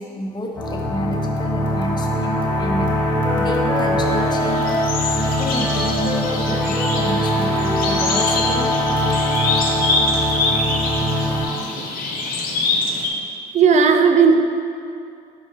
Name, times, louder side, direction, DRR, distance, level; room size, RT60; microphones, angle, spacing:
voice 1, 0.0-2.9 3.4-4.8 5.1-8.7, left 1 dB, 25° left, 1 dB, 0.7 m, -29 dB
sound 1, 0.5-11.5, equal, 10° left, 1.2 m, -22 dB
Wind instrument woodwind instrument, 1.6-8.9, left 1 dB, 10° right, 1.0 m, -30 dB
sound 2, 4.1-13.1, left 3 dB, 60° left, 0.9 m, -25 dB
voice 2, 13.5-14.4, right 5 dB, 45° right, 6 dB, 0.5 m, -14 dB
4.7 x 3.6 x 5.5 m, 2.4 s
cardioid pair, 110°, 17 cm